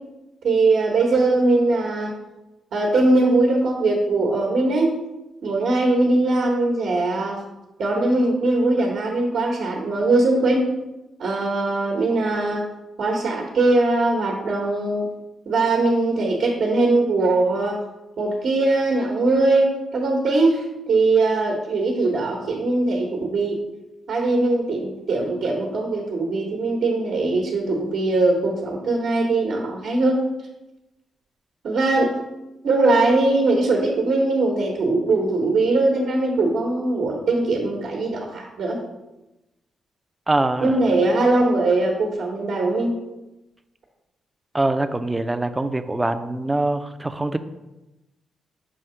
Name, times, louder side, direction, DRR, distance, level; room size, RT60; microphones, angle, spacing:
voice 1, 0.4-2.1 2.7-5.0 5.4-7.4 7.8-10.7 11.2-12.6 13.0-15.1 15.5-17.8 18.2-23.6 24.1-30.2 31.6-32.1 32.6-38.8 40.6-42.9, right 2 dB, 70° right, -2 dB, 1.1 m, -21 dB
voice 2, 40.3-40.7 44.5-47.4, right 2 dB, 15° right, 10 dB, 0.4 m, -23 dB
6.2 x 2.8 x 5.5 m, 1.0 s
cardioid pair, 85°, 0 cm